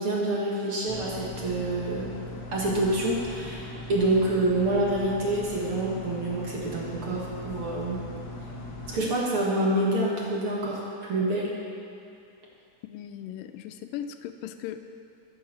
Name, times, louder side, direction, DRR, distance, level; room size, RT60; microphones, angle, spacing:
voice 1, 0.0-2.1 2.5-8.0 8.9-11.6, right 1 dB, 45° right, -4 dB, 2.2 m, -27 dB
sound 1, 0.9-9.0, left 2 dB, 50° left, 1.5 m, -39 dB
voice 2, 12.8-14.8, left 10 dB, 85° left, 8 dB, 2.3 m, -38 dB
15.0 x 7.2 x 7.0 m, 2.7 s
omnidirectional pair, 3.9 m